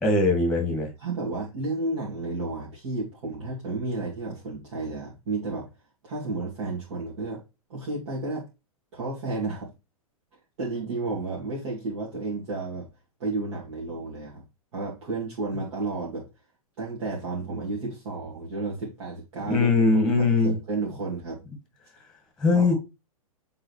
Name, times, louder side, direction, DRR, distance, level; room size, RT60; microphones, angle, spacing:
voice 1, 0.0-0.9 19.5-20.5 22.4-22.7, left 3 dB, 5° left, 1.8 m, -21 dB
voice 2, 1.0-5.7 6.0-7.4 7.7-8.4 8.9-9.7 10.6-12.9 13.2-14.4 14.7-16.2 16.8-21.5 22.5-22.7, right 3 dB, 50° right, 2.7 m, -32 dB
7.6 x 3.9 x 3.2 m
figure-of-eight pair, 105°, 19 cm